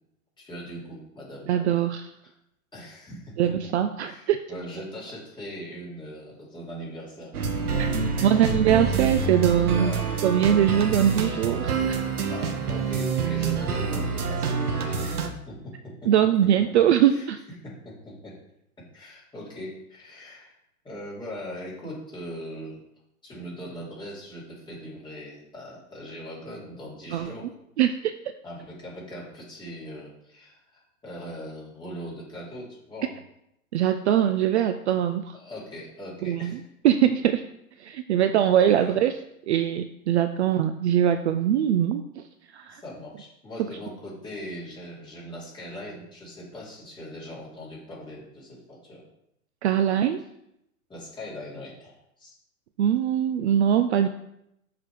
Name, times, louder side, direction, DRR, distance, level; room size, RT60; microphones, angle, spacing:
voice 1, 0.4-1.5 2.7-3.7 4.0-7.3 8.2-8.5 9.1-9.3 9.7-10.0 12.3-16.1 16.4-16.5 17.1-18.4 18.8-20.5 20.8-22.8 23.2-27.5 28.4-33.2 35.3-36.6 38.7-39.0 42.7-49.0 50.9-52.3, equal, 10° left, -6 dB, 2.5 m, -40 dB
voice 2, 1.5-2.1 3.4-4.4 7.8-7.9 8.2-9.9 10.2-12.1 16.1-17.4 27.1-27.3 27.8-28.1 33.7-35.4 36.2-37.4 37.8-39.1 39.5-42.2 42.5-42.8 49.6-50.2 52.8-54.1, right 10 dB, 50° right, 9 dB, 0.4 m, -22 dB
sound 1, 7.3-15.3, right 5 dB, 80° right, 1.0 m, -27 dB
6.6 x 3.5 x 4.6 m, 0.80 s
hypercardioid pair, 120°, 44 cm